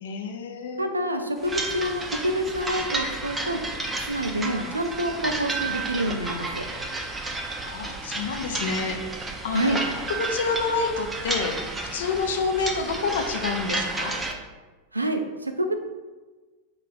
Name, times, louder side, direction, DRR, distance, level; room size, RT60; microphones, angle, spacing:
voice 1, 0.0-0.9 7.6-9.8 10.1-11.6 11.9-14.2, left 4 dB, 60° left, 4 dB, 0.5 m, -28 dB
voice 2, 0.8-3.6 4.0-6.7 9.5-9.8 14.9-15.8, right 1 dB, 80° right, 6 dB, 0.4 m, -27 dB
sound 1, 1.4-14.3, right 2 dB, 15° right, 0.5 m, -31 dB
4.5 x 2.4 x 4.0 m, 1.3 s
figure-of-eight pair, 90°, 0 cm